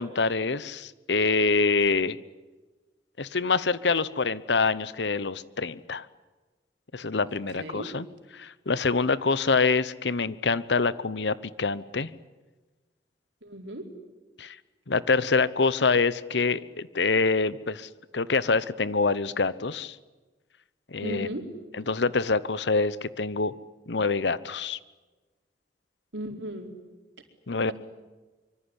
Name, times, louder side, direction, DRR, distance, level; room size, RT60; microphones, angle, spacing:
voice 1, 0.0-2.2 3.2-6.1 6.9-8.1 8.3-12.1 14.4-14.6 14.9-20.0 20.9-21.3 21.9-23.5 23.9-24.8 27.5-27.7, left 4 dB, 75° left, 17 dB, 1.0 m, -25 dB
voice 2, 7.3-7.9 13.4-13.9 21.0-21.5 26.1-26.7 27.6-27.7, right 1 dB, 90° right, 3 dB, 4.5 m, -36 dB
24.5 x 24.0 x 9.9 m, 1.2 s
head